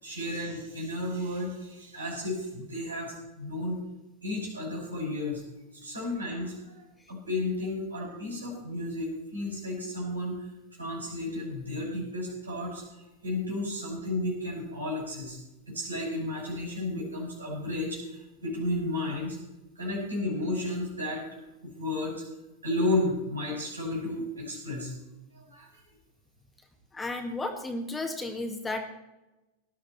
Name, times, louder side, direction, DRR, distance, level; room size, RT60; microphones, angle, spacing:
voice 1, 0.0-3.8 4.2-5.4 5.7-6.7 7.1-10.4 10.8-12.8 13.2-15.4 15.7-19.4 19.8-21.3 21.6-22.2 22.6-24.9 25.3-25.7, left 2 dB, 75° right, -2 dB, 6.4 m, -32 dB
voice 2, 26.9-28.8, left 2 dB, 10° left, 5 dB, 1.9 m, -33 dB
18.0 x 11.5 x 4.3 m, 0.99 s
figure-of-eight pair, 90°, 0 cm